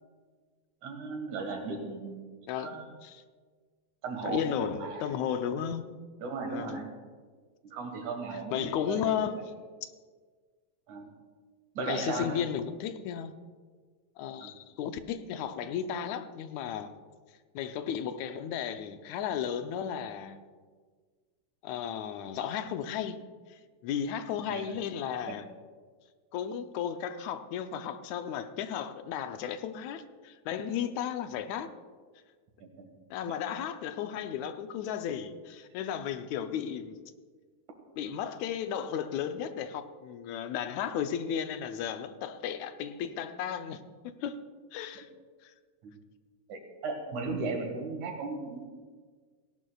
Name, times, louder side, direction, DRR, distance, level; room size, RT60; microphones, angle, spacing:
voice 1, 0.8-2.3 2.6-2.9 4.0-5.1 6.2-6.9 7.6-9.5 10.9-11.1 11.7-12.4 14.4-14.5 24.5-24.8 25.3-25.4 32.6-32.9 33.3-33.4 45.0-45.1 45.8-46.0 46.5-48.7, right 4 dB, 80° right, 3 dB, 3.2 m, -36 dB
voice 2, 2.5-3.2 4.2-5.8 6.5-6.9 8.5-9.4 11.8-13.3 14.2-16.9 17.6-20.4 21.6-23.2 23.5-25.5 26.3-31.7 33.1-37.0 38.0-43.8 44.2-44.4 44.7-45.1 45.4-45.5, left 8 dB, 80° left, 9 dB, 2.0 m, -34 dB
18.0 x 16.5 x 2.3 m, 1.5 s
omnidirectional pair, 3.3 m